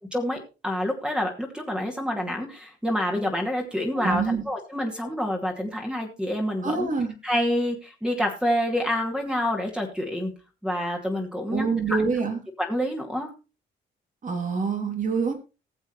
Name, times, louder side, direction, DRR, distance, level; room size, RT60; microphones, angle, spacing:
voice 1, 0.1-6.9 7.2-10.3 10.6-12.0 12.6-13.3, equal, 5° right, 1 dB, 2.5 m, -27 dB
voice 2, 3.9-4.4 6.6-7.1 11.5-12.4 14.2-15.3, right 4 dB, 40° right, 5 dB, 3.0 m, -26 dB
19.0 x 7.1 x 3.2 m, 0.30 s
cardioid pair, 90°, 20 cm